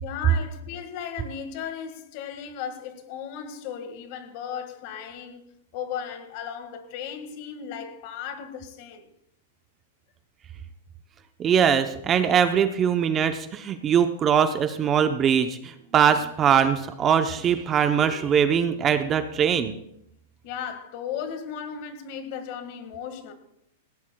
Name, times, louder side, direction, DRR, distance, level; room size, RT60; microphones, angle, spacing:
voice 1, 0.0-5.4 5.7-9.1 17.7-17.8 20.4-23.3, left 8 dB, 45° left, 1.7 m, -36 dB
voice 2, 11.4-19.7, right 8 dB, 20° right, 0.6 m, -22 dB
18.0 x 16.5 x 2.3 m
supercardioid pair, 155°, 0 cm